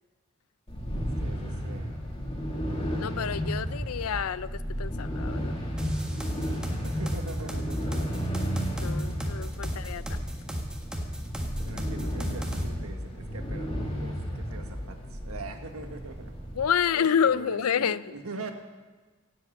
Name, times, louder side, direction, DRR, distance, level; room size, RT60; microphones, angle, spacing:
sound 1, 0.7-16.7, equal, 30° left, 2.7 m, -33 dB
voice 1, 1.2-2.0 6.8-8.3 9.6-9.9 11.6-16.3 16.9-18.5, right 3 dB, 80° right, 5 dB, 1.6 m, -42 dB
voice 2, 3.0-5.5 8.8-10.0 16.6-18.0, left 7 dB, 85° left, 17 dB, 0.5 m, -28 dB
sound 2, 5.8-12.6, equal, 5° right, 1.5 m, -34 dB
17.0 x 7.9 x 8.5 m, 1.3 s
head